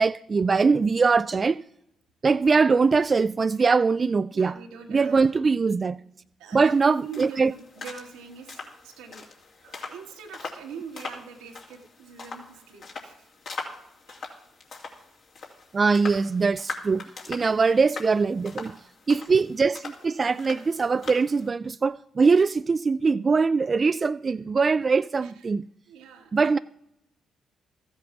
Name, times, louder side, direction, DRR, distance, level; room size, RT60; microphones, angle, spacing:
voice 1, 0.0-1.6 2.2-4.5 4.9-6.0 6.5-7.5 15.7-18.7 19.1-25.6 26.3-26.6, right 4 dB, 40° right, 0.3 m, -22 dB
voice 2, 4.3-5.4 6.4-9.3 9.6-13.3 14.1-14.2 17.4-17.5 25.2-25.4 25.9-26.3, right 6 dB, 90° right, 1.5 m, -42 dB
sound 1, 6.6-21.5, left 4 dB, 65° left, 2.7 m, -42 dB
14.0 x 8.1 x 5.9 m
supercardioid pair, 55°, 0 cm